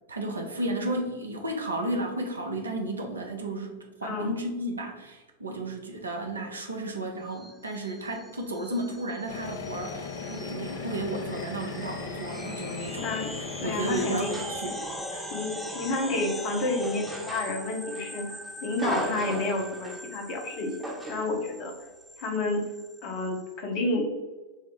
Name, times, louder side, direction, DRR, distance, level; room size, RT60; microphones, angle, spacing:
voice 1, 0.1-13.2 13.6-14.8 15.1-15.3, right 1 dB, 75° right, 2 dB, 0.6 m, -33 dB
voice 2, 4.0-4.3 13.0-13.3 13.6-14.4 14.7-14.8 15.3-21.7 22.2-22.7 23.0-24.1, left 2 dB, 40° left, 2 dB, 0.8 m, -30 dB
sound 1, 7.3-23.5, equal, ahead, 0.4 m, -42 dB
sound 2, 9.3-16.2, left 5 dB, 60° left, 0.5 m, -38 dB
sound 3, 10.6-15.6 16.8-18.1 18.4-20.1 20.8-21.3, right 1 dB, 15° right, 0.8 m, -40 dB
5.7 x 2.0 x 3.0 m, 1.3 s
figure-of-eight pair, 90°, 0 cm